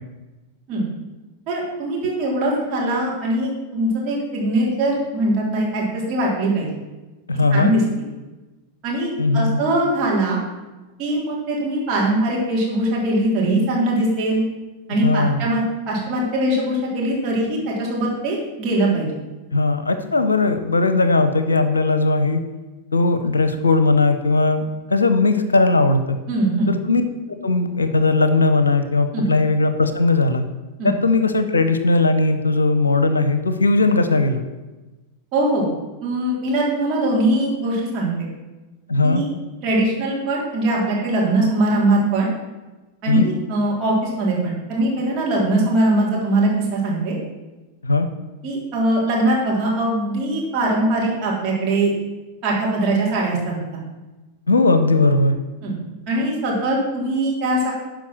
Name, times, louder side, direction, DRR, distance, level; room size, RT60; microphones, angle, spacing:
voice 1, 1.5-6.7 7.5-7.8 8.8-10.4 11.0-14.4 14.9-19.1 26.3-26.7 29.1-29.3 30.8-30.9 35.3-35.7 36.0-38.1 39.0-39.3 39.6-42.3 43.0-47.1 48.4-51.9 52.4-53.6 55.6-55.8 56.1-57.7, right 1 dB, 35° right, -4 dB, 3.7 m, -21 dB
voice 2, 7.3-7.7 9.2-9.6 15.0-15.4 19.5-22.4 22.9-24.6 24.9-26.2 26.7-27.0 27.3-30.4 30.8-34.4 38.9-39.2 43.1-43.2 47.8-48.1 54.5-55.4, left 3 dB, 75° left, 10 dB, 0.7 m, -18 dB
11.5 x 5.1 x 6.1 m, 1.2 s
figure-of-eight pair, 90°, 0 cm